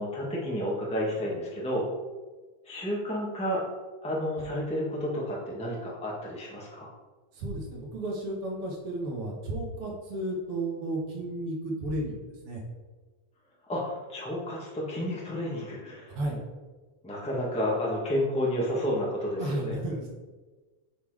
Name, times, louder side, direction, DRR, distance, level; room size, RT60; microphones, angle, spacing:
voice 1, 0.0-1.8 2.6-3.6 4.0-6.9 13.7-16.2 17.0-19.7, equal, 5° left, -4 dB, 0.7 m, -31 dB
voice 2, 7.3-12.2 12.4-12.6 16.1-16.4 19.4-20.1, right 1 dB, 55° right, -2 dB, 2.1 m, -33 dB
7.2 x 4.2 x 4.9 m, 1.3 s
omnidirectional pair, 3.3 m